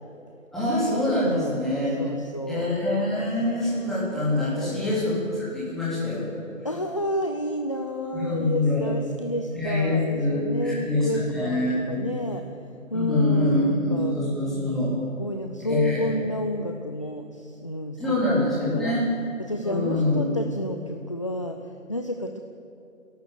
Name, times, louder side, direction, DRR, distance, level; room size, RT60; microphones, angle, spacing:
voice 1, 0.5-2.1 2.5-6.2 8.1-8.8 9.5-12.0 12.9-14.9 15.7-16.1 18.0-19.1 19.6-20.2, left 2 dB, ahead, -9 dB, 3.6 m, -25 dB
voice 2, 1.2-1.7 2.0-2.7 4.4-5.1 6.6-12.4 12.9-14.2 15.2-19.0 19.4-22.4, left 1 dB, 25° left, 5 dB, 0.6 m, -30 dB
27.5 x 11.5 x 8.1 m, 2.8 s
figure-of-eight pair, 155°, 40 cm